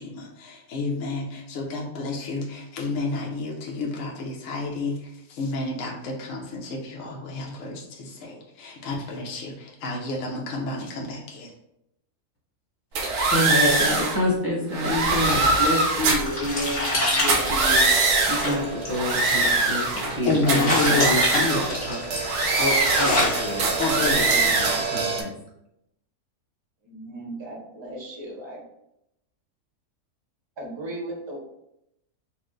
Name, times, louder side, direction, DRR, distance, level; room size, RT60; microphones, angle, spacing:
voice 1, 0.0-11.5 20.2-21.7 23.8-24.4, left 3 dB, 65° left, -1 dB, 1.1 m, -29 dB
sound 1, 13.0-14.2 14.7-16.4 17.2-18.5 18.9-20.2 20.5-21.7 22.2-23.3 23.6-24.9, right 3 dB, 80° right, 1.3 m, -22 dB
voice 2, 13.3-22.0 22.6-25.3, left 1 dB, 15° left, -4 dB, 1.0 m, -28 dB
sound 2, 15.7-24.6, left 1 dB, 45° left, 1.9 m, -28 dB
sound 3, 17.5-25.2, right 4 dB, 60° right, 0.8 m, -32 dB
voice 3, 26.8-28.6 30.6-31.4, right 1 dB, 25° right, -2 dB, 0.7 m, -36 dB
4.3 x 2.1 x 3.8 m, 0.81 s
omnidirectional pair, 1.6 m